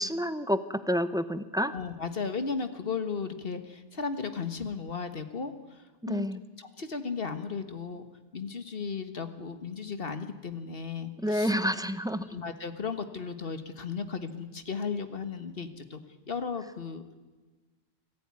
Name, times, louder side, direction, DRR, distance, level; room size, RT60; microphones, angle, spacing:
voice 1, 0.0-1.7 6.0-6.4 11.2-12.3, equal, 5° right, 13 dB, 0.8 m, -29 dB
voice 2, 1.6-6.3 6.6-8.1 8.3-11.5 12.3-16.0 16.3-17.0, left 5 dB, 65° left, 10 dB, 1.7 m, -35 dB
25.0 x 14.5 x 9.6 m, 1.3 s
omnidirectional pair, 1.1 m